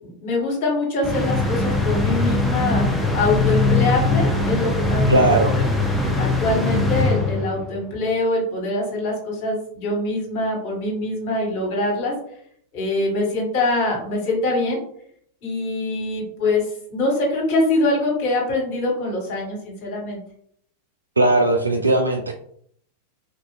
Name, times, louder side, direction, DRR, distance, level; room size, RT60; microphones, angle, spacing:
voice 1, 0.0-5.6 6.1-12.1 12.7-14.8 15.4-16.6 16.9-20.2, left 2 dB, 45° left, -1 dB, 1.3 m, -24 dB
sound 1, 1.0-7.7, left 2 dB, 5° left, 0.6 m, -21 dB
voice 2, 5.1-5.6 21.2-22.3, right 2 dB, 80° right, 4 dB, 0.3 m, -18 dB
3.5 x 2.4 x 2.4 m, 0.65 s
figure-of-eight pair, 90°, 0 cm